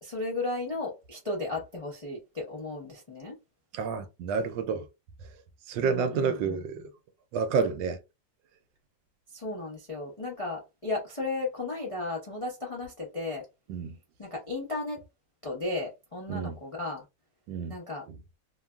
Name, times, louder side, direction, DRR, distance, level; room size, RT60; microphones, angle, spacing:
voice 1, 0.0-3.4 5.8-6.6 9.3-13.4 14.2-15.0 15.4-17.0 17.7-18.0, left 2 dB, 40° left, 0.4 m, -34 dB
voice 2, 3.7-4.9 5.7-6.9 7.3-8.0 13.7-14.0 16.3-16.6 17.5-17.7 18.1-18.2, right 5 dB, 80° right, 1.2 m, -29 dB
3.2 x 2.3 x 2.2 m
omnidirectional pair, 2.0 m